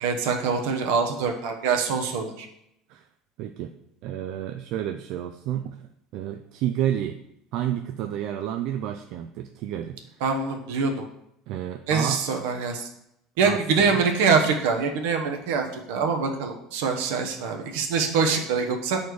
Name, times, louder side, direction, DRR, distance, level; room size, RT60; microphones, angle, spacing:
voice 1, 0.0-2.5 10.2-11.1 11.9-12.9 13.4-19.0, right 5 dB, 80° right, 3 dB, 1.0 m, -24 dB
voice 2, 3.4-3.7 4.0-5.8 6.1-7.2 7.5-10.0 11.5-12.2 13.4-14.0, right 11 dB, 65° right, 6 dB, 0.4 m, -30 dB
6.8 x 4.2 x 4.7 m, 0.79 s
supercardioid pair, 110°, 0 cm